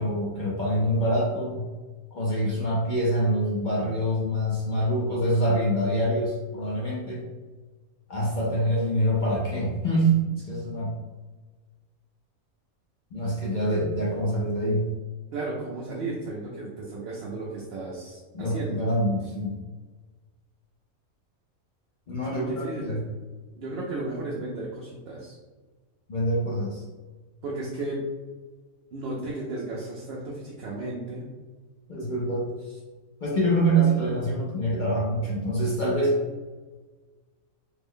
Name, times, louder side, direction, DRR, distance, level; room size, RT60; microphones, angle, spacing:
voice 1, 0.0-1.6 2.1-7.2 8.1-11.0 13.1-14.9 18.3-19.6 22.1-23.0 26.1-26.8 31.9-32.5 33.2-36.2, right 1 dB, 50° left, -6 dB, 0.6 m, -25 dB
voice 2, 15.3-18.9 22.3-23.0 23.5-25.3 27.4-28.0 28.9-31.3, right 2 dB, 60° right, -4 dB, 0.6 m, -34 dB
3.2 x 2.1 x 3.6 m, 1.3 s
omnidirectional pair, 1.4 m